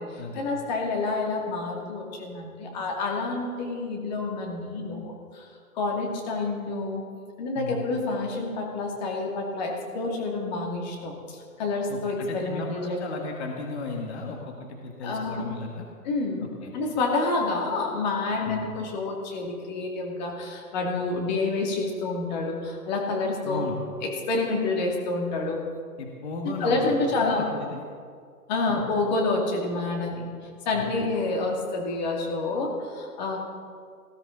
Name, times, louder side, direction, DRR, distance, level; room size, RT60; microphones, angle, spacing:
voice 1, 0.4-5.4 5.8-7.0 7.4-11.1 11.6-13.0 15.0-15.4 16.0-16.5 16.7-23.7 24.3-25.6 26.6-27.4 28.5-30.3 30.7-33.4, left 3 dB, 30° left, 0 dB, 2.4 m, -28 dB
voice 2, 11.9-15.9 16.4-16.7 18.4-18.7 23.4-23.8 26.0-27.8 28.7-28.8 30.7-30.8, left 3 dB, 45° left, 1 dB, 1.8 m, -35 dB
19.0 x 14.0 x 3.9 m, 2.1 s
hypercardioid pair, 155°, 47 cm